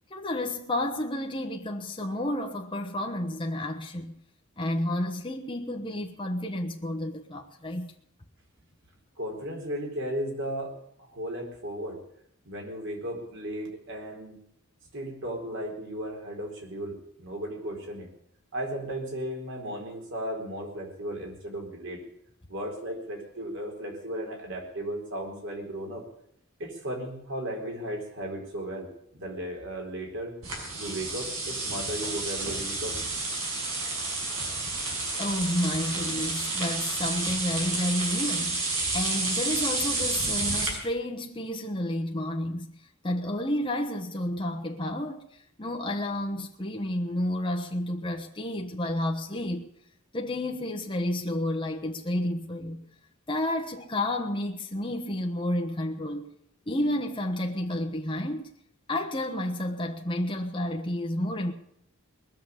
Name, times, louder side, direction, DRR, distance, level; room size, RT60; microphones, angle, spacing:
voice 1, 0.1-4.1 4.6-7.9 35.2-42.7 43.0-45.2 45.6-49.7 50.1-52.8 53.3-56.3 56.7-58.5 58.9-61.5, left 1 dB, 25° left, 1.1 m, -31 dB
voice 2, 9.2-10.7 11.1-12.0 12.4-14.4 14.9-18.1 18.5-22.0 22.5-26.0 26.6-30.3 30.8-33.0, right 1 dB, 60° right, 4.4 m, -35 dB
sound 1, 30.4-40.7, right 3 dB, 75° right, 6.0 m, -30 dB
20.5 x 7.2 x 9.8 m
head